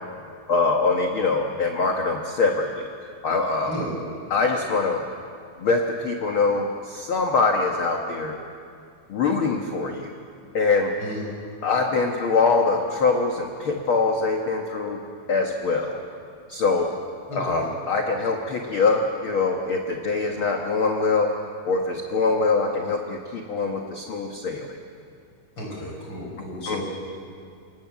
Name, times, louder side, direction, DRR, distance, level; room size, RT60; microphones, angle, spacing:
voice 1, 0.5-2.9 3.2-3.8 4.3-5.0 5.6-8.4 9.1-10.1 10.5-10.9 11.6-15.0 15.3-16.0 16.5-16.9 17.3-24.7 26.7-26.8, left 4 dB, 60° left, 2 dB, 1.4 m, -23 dB
voice 2, 17.3-17.6 25.6-26.8, left 1 dB, 30° left, -1 dB, 6.4 m, -33 dB
27.5 x 19.0 x 7.4 m, 2.3 s
omnidirectional pair, 4.3 m